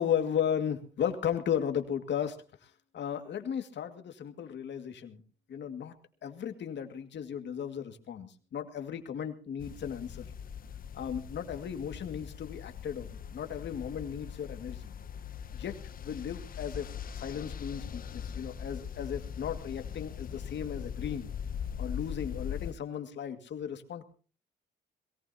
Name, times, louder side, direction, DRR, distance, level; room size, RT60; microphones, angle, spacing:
voice 1, 0.0-5.2 5.5-5.9 6.2-10.3 10.9-14.9 15.5-15.7 16.0-16.9 17.1-21.3 21.8-24.1, left 8 dB, 65° left, 7 dB, 2.2 m, -35 dB
sound 1, 9.6-22.7, left 8 dB, 45° left, 0.7 m, -41 dB
22.0 x 18.0 x 2.9 m, 0.38 s
cardioid pair, 90°, 20 cm